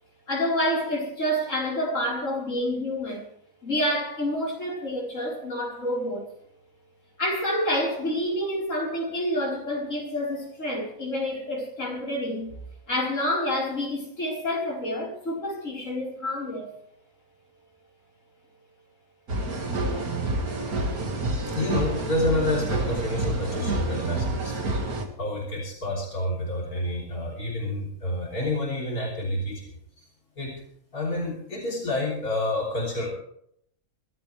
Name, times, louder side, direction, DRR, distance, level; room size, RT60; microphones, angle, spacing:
voice 1, 0.3-3.2 3.6-6.3 7.2-12.5 12.9-16.7, left 1 dB, 60° left, 4.9 m, -28 dB
sound 1, 19.3-25.0, right 2 dB, 85° right, 2.6 m, -28 dB
voice 2, 21.5-24.7 25.2-30.1 30.4-30.6 30.9-33.1, left 1 dB, 85° left, 3.8 m, -29 dB
24.5 x 13.0 x 3.4 m
omnidirectional pair, 1.5 m